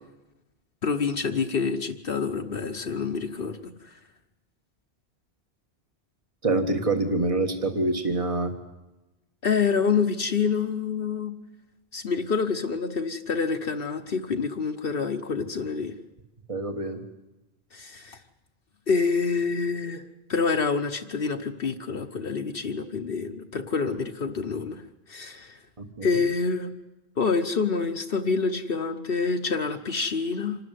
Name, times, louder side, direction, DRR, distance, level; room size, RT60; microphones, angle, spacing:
voice 1, 0.8-3.9 9.4-11.3 11.9-16.0 17.7-18.2 18.9-20.0 20.3-24.8 25.1-25.6 26.0-26.7 27.2-30.6, left 5 dB, 60° left, 5 dB, 1.1 m, -27 dB
voice 2, 6.4-8.5 16.5-17.0 25.8-26.1, right 2 dB, 30° right, 5 dB, 1.7 m, -26 dB
26.0 x 12.5 x 9.3 m, 1.0 s
omnidirectional pair, 1.1 m